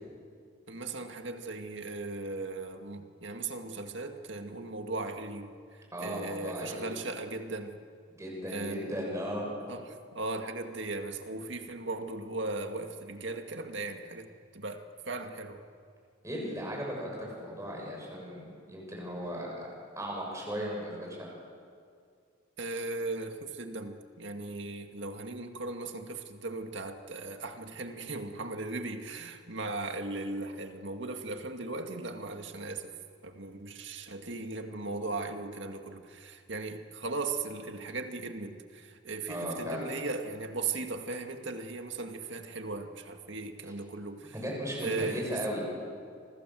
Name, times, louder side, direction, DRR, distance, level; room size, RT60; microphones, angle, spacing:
voice 1, 0.7-7.8 8.5-8.9 9.7-15.6 22.6-33.0 33.2-44.4 44.8-45.5, right 3 dB, 65° right, 5 dB, 2.1 m, -37 dB
voice 2, 5.9-6.8 8.1-9.5 16.2-19.5 19.9-21.3 39.3-39.9 44.3-45.6, equal, 15° right, -2 dB, 7.1 m, -36 dB
28.5 x 24.5 x 7.7 m, 2.2 s
head